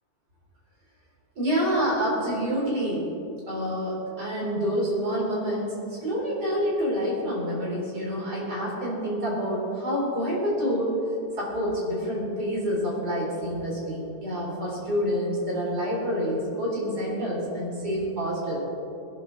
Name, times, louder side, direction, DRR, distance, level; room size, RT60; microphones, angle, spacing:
voice 1, 1.4-3.0 3.5-5.7 6.0-10.9 11.4-18.6, equal, 75° right, -5 dB, 4.9 m, -27 dB
21.5 x 10.5 x 4.1 m, 2.6 s
omnidirectional pair, 1.7 m